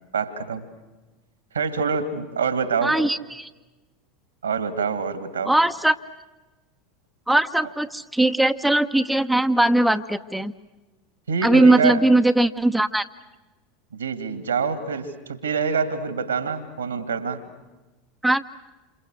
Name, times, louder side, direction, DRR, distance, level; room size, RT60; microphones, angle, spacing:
voice 1, 0.1-0.6 1.5-3.0 4.4-5.5 11.3-12.0 13.9-17.4, right 5 dB, 80° right, 10 dB, 2.3 m, -26 dB
voice 2, 2.8-3.5 5.5-6.0 7.3-10.5 11.4-13.1 18.2-18.4, right 2 dB, 5° right, 7 dB, 0.8 m, -19 dB
28.0 x 28.0 x 6.6 m, 1.1 s
figure-of-eight pair, 80°, 0 cm